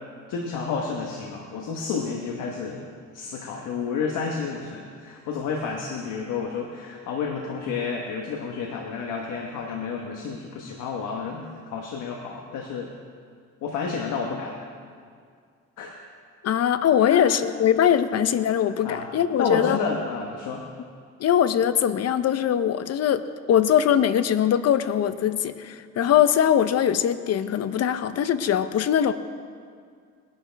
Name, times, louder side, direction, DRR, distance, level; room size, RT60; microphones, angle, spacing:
voice 1, 0.3-2.9 3.1-12.9 13.6-14.5 15.8-15.9 17.1-17.3 18.6-19.1 19.4-20.6, left 5 dB, 90° left, 0 dB, 1.2 m, -30 dB
voice 2, 16.4-19.8 21.2-29.1, left 9 dB, 55° left, 12 dB, 0.7 m, -21 dB
20.0 x 11.0 x 3.4 m, 2.1 s
cardioid pair, 90°, 30 cm